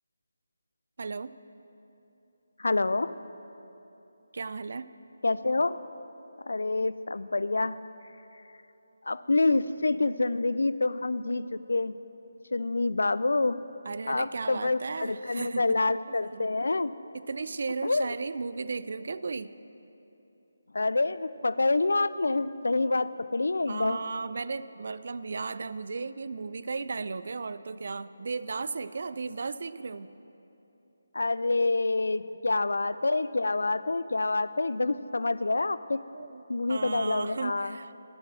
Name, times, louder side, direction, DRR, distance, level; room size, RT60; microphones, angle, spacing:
voice 1, 1.0-1.4 4.3-4.9 9.9-10.1 13.8-15.8 16.3-16.5 17.1-19.6 22.9-23.0 23.7-30.1 36.1-37.9, right 4 dB, 55° right, 15 dB, 0.4 m, -35 dB
voice 2, 2.6-3.1 5.2-5.8 6.5-7.8 9.1-12.0 12.5-13.6 14.1-16.9 17.8-18.1 20.7-24.0 31.1-36.0 36.5-37.8, left 3 dB, 75° left, 15 dB, 0.4 m, -27 dB
12.0 x 8.7 x 7.4 m, 3.0 s
figure-of-eight pair, 155°, 0 cm